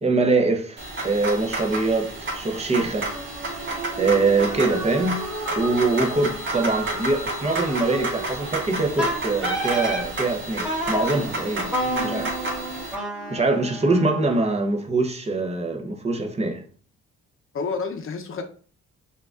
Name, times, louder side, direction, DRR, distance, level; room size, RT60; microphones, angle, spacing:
voice 1, 0.0-3.1 4.0-5.2 5.6-11.7 12.0-12.3 13.3-16.6, right 3 dB, 20° right, 0.8 m, -23 dB
sound 1, 0.8-12.9, right 1 dB, 40° right, 1.6 m, -31 dB
sound 2, 2.9-13.9, right 3 dB, 85° right, 0.9 m, -36 dB
Wind instrument woodwind instrument, 9.0-10.1 10.6-11.1 11.7-14.7, right 1 dB, 5° right, 1.1 m, -29 dB
voice 2, 11.8-12.3 17.5-18.4, left 5 dB, 45° left, 0.8 m, -31 dB
5.5 x 2.6 x 2.4 m
cardioid pair, 90°, 30 cm